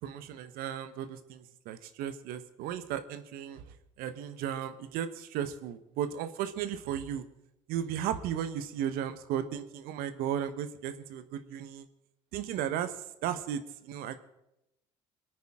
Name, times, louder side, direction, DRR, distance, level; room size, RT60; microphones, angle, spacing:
voice 1, 0.0-3.6 4.0-7.2 7.7-11.9 12.3-14.2, right 9 dB, 70° right, 11 dB, 1.2 m, -35 dB
27.0 x 9.2 x 3.7 m, 0.89 s
hypercardioid pair, 55°, 16 cm